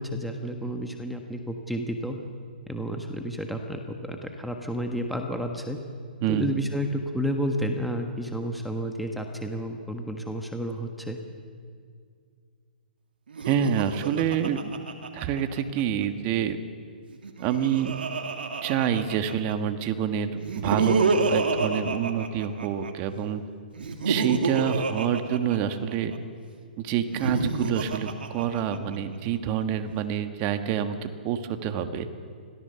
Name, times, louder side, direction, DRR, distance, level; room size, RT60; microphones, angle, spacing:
voice 1, 0.0-2.2 2.7-5.8 6.3-11.2, equal, ahead, 3 dB, 1.4 m, -31 dB
Laughter, 13.3-15.8 17.1-19.5 20.4-22.9 23.7-26.2 27.0-29.0, right 4 dB, 80° right, 2.7 m, -28 dB
voice 2, 13.4-14.7 15.1-16.6 17.4-18.0 18.6-23.4 24.0-26.1 26.8-32.1, right 8 dB, 30° right, 8 dB, 1.4 m, -27 dB
25.5 x 17.5 x 6.9 m, 2.1 s
hypercardioid pair, 145°, 5 cm